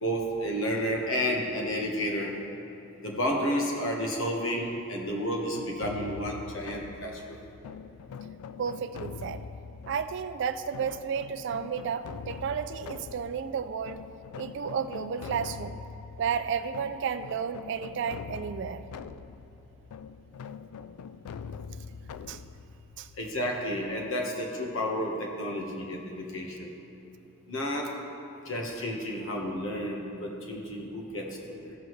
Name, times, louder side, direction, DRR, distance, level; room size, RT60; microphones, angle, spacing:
voice 1, 0.0-2.3 3.0-7.4 23.2-26.7 27.5-27.9 28.5-31.7, equal, 60° left, 0 dB, 1.3 m, -31 dB
sound 1, 5.5-24.2, left 6 dB, 85° left, 0.3 m, -43 dB
voice 2, 8.6-9.5 9.9-14.0 14.3-15.8 16.2-18.8 22.3-22.4 23.0-23.1, right 7 dB, 55° right, 10 dB, 0.3 m, -32 dB
14.5 x 7.6 x 3.2 m, 3.0 s
head